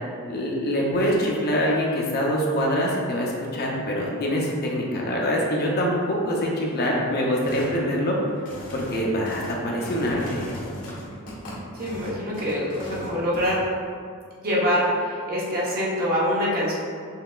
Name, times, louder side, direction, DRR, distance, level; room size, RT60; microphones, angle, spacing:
voice 1, 0.3-8.2 8.7-10.5, equal, 45° left, -2 dB, 0.7 m, -24 dB
sound 1, 7.4-7.8 8.3-13.6, equal, 80° left, 1.3 m, -37 dB
voice 2, 11.7-13.6 14.4-16.7, equal, 45° right, -6 dB, 1.0 m, -24 dB
5.7 x 3.3 x 2.4 m, 2.2 s
head